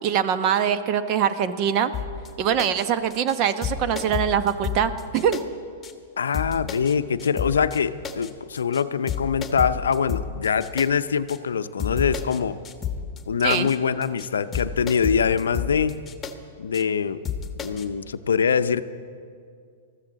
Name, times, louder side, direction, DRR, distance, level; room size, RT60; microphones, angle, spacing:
voice 1, 0.0-1.9 2.4-5.4 13.4-13.7, right 8 dB, 45° right, 11 dB, 0.9 m, -23 dB
sound 1, 1.9-2.3 2.6-2.8 3.1-3.4 3.6-5.4 5.8-5.9 6.3-6.9 7.2-7.8 8.0-8.3 8.6-8.8 9.1-10.9 11.3-11.4 11.8-12.4 12.6-13.2 13.5-13.8 14.0-14.3 14.5-16.3 16.7-16.8 17.2-17.8, left 7 dB, 20° left, 1.4 m, -31 dB
voice 2, 6.2-12.6 13.3-16.0 16.6-17.2 17.6-18.8, left 6 dB, 80° left, 12 dB, 0.6 m, -23 dB
20.5 x 14.5 x 4.0 m, 2.2 s
hypercardioid pair, 110°, 0 cm